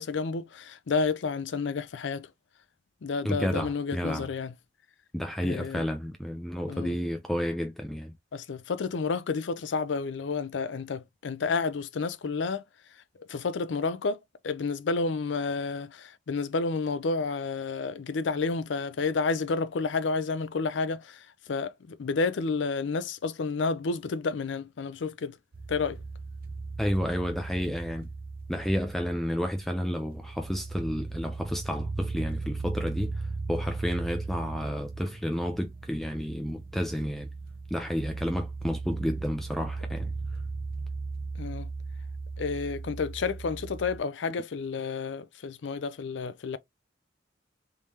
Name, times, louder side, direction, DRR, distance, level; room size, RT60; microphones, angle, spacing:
voice 1, 0.0-2.3 3.0-4.5 5.4-5.8 6.7-7.0 8.3-12.6 13.3-14.2 14.4-25.4 25.7-26.0 41.4-41.7 42.4-46.6, left 4 dB, 70° left, 0.5 m, -30 dB
voice 2, 3.2-4.3 5.1-8.1 26.8-28.1 28.5-37.3 37.7-40.1, equal, ahead, 0.4 m, -31 dB
sound 1, 25.5-44.0, right 3 dB, 50° right, 0.8 m, -37 dB
3.6 x 3.1 x 2.8 m
head